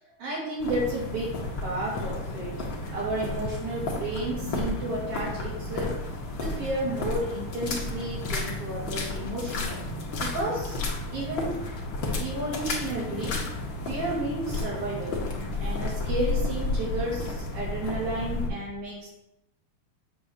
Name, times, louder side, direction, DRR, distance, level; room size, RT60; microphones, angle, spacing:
voice 1, 0.0-6.0 6.4-9.8 10.2-10.8 11.1-11.6 12.2-13.4 13.9-15.2 15.6-19.1, right 1 dB, 85° right, -7 dB, 4.4 m, -32 dB
sound 1, 0.6-18.5, left 2 dB, 55° left, 1.6 m, -32 dB
8.1 x 3.4 x 6.3 m, 0.87 s
omnidirectional pair, 3.3 m